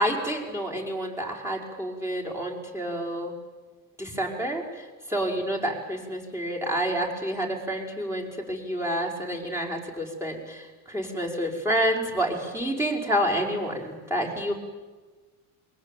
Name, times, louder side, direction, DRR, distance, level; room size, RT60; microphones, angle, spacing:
voice 1, 0.0-3.3 4.0-14.5, equal, 5° right, 1 dB, 5.2 m, -29 dB
26.5 x 23.5 x 9.2 m, 1.3 s
cardioid pair, 140°, 50 cm